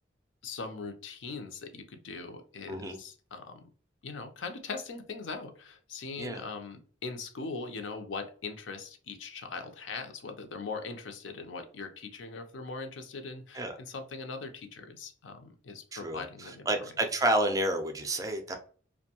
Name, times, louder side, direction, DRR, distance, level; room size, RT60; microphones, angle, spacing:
voice 1, 0.4-3.7 4.0-16.9, left 4 dB, 85° left, 0.5 m, -41 dB
voice 2, 2.7-3.0 6.2-6.4 13.5-13.8 15.9-18.6, right 1 dB, 20° right, 0.3 m, -30 dB
2.5 x 2.1 x 2.8 m
head